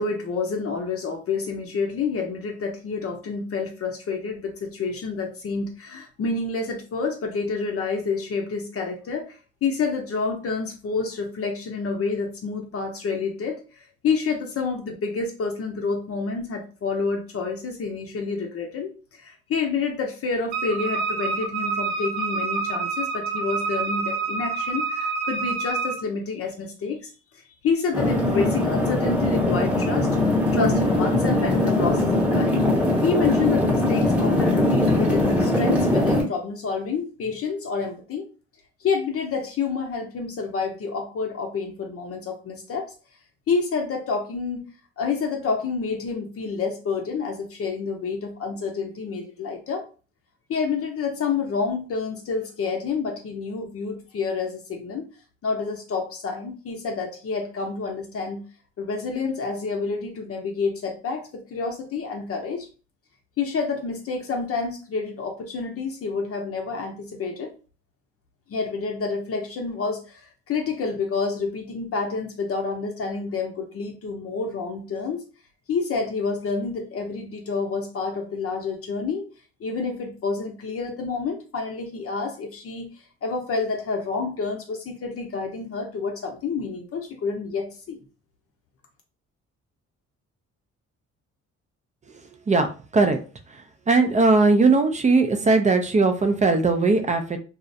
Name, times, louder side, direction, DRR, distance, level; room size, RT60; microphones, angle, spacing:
voice 1, 0.0-32.6 33.0-38.3 38.8-42.9 43.5-44.6 45.0-49.8 50.5-55.1 55.4-58.4 58.8-62.7 63.4-67.5 68.5-75.2 75.7-79.3 79.6-82.9 83.2-88.0, left 4 dB, 50° left, 3 dB, 0.6 m, -28 dB
Wind instrument woodwind instrument, 20.5-26.0, right 4 dB, 65° right, 0.7 m, -27 dB
sound 1, 27.9-36.2, left 1 dB, 5° right, 0.9 m, -21 dB
voice 2, 93.9-97.4, right 3 dB, 25° right, 7 dB, 0.4 m, -19 dB
2.4 x 2.0 x 2.6 m, 0.35 s
cardioid pair, 90°, 30 cm